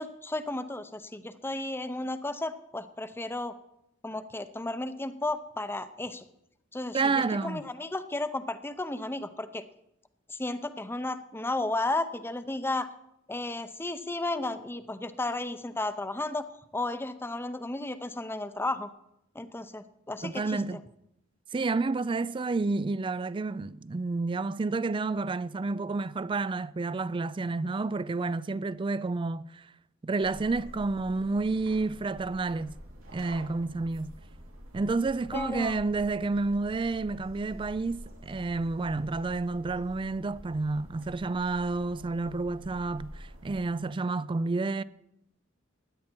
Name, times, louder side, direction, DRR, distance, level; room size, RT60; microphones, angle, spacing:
voice 1, 0.0-3.6 4.0-6.2 6.7-9.6 10.3-12.9 13.3-16.4 16.7-18.9 19.3-20.8 35.3-35.8, left 2 dB, 10° left, 0.6 m, -33 dB
voice 2, 6.9-7.6 20.2-20.8 21.5-29.7 30.0-32.7 33.1-34.1 34.7-44.8, right 3 dB, 25° right, 0.3 m, -30 dB
sound 1, 30.2-43.6, equal, 85° right, 3.0 m, -47 dB
16.0 x 11.0 x 4.5 m
head